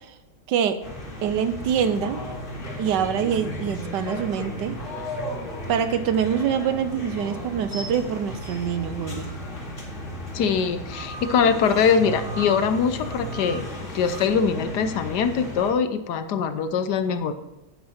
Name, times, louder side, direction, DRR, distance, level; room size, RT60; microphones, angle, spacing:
voice 1, 0.5-0.8 1.2-2.2 2.8-4.8 5.7-9.3, right 8 dB, 80° right, 11 dB, 1.3 m, -25 dB
sound 1, 0.8-15.7, equal, 45° left, 2.4 m, -34 dB
voice 2, 10.3-13.7 13.9-17.3, left 6 dB, 70° left, 10 dB, 1.3 m, -22 dB
9.4 x 8.7 x 4.3 m, 0.97 s
omnidirectional pair, 1.9 m